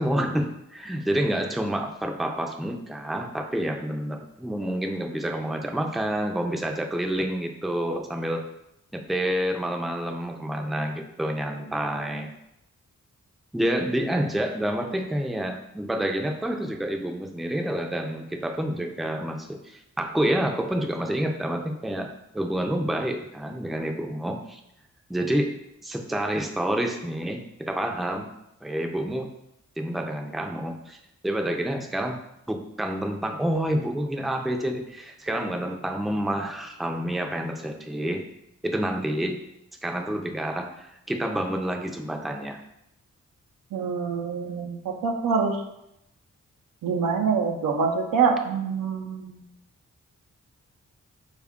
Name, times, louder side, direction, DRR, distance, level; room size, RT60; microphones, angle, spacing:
voice 1, 0.0-8.5 8.9-12.3 13.5-24.6 25.1-25.5 25.8-28.3 28.6-29.3 29.8-31.0 31.2-32.2 32.5-38.2 38.6-39.4 39.8-42.6, right 1 dB, ahead, 3 dB, 0.5 m, -28 dB
voice 2, 43.7-45.6 46.8-49.4, right 5 dB, 80° right, 4 dB, 0.6 m, -25 dB
3.4 x 2.4 x 3.5 m, 0.83 s
supercardioid pair, 40°, 33 cm